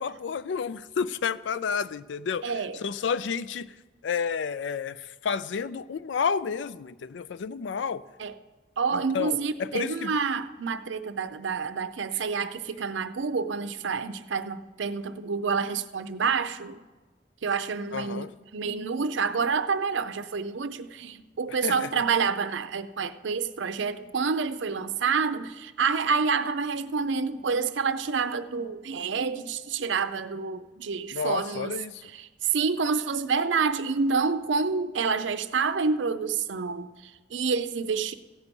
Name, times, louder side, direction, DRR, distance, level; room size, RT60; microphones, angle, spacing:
voice 1, 0.0-3.7 4.0-8.0 8.9-9.3 9.6-10.1 17.9-18.3 21.6-21.9 31.1-32.0, left 6 dB, 80° left, 0.4 m, -30 dB
voice 2, 2.4-2.8 8.2-8.3 8.8-16.8 17.4-31.7 32.0-38.1, right 5 dB, 85° right, 0.6 m, -28 dB
14.5 x 8.2 x 5.2 m
head